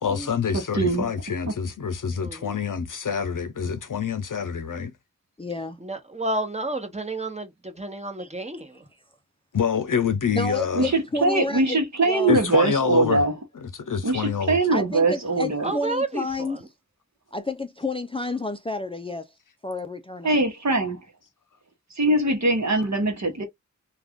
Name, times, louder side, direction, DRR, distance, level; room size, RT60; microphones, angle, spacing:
voice 1, 0.0-4.9 9.5-10.9 12.3-13.2 13.9-14.6, left 6 dB, 80° left, 0.6 m, -26 dB
voice 2, 0.5-1.1 1.5-1.6 10.7-13.4 14.0-15.7 20.2-21.1 21.9-23.4, right 2 dB, 60° right, 1.0 m, -22 dB
voice 3, 2.2-2.6 5.8-8.9 15.6-16.7, right 2 dB, 20° right, 0.9 m, -31 dB
voice 4, 5.4-5.8 8.2-8.3 10.3-11.8 12.1-12.3 14.7-16.6 17.3-19.3 19.6-20.4, left 2 dB, 20° left, 0.4 m, -30 dB
2.5 x 2.3 x 3.5 m
wide cardioid pair, 55°, 31 cm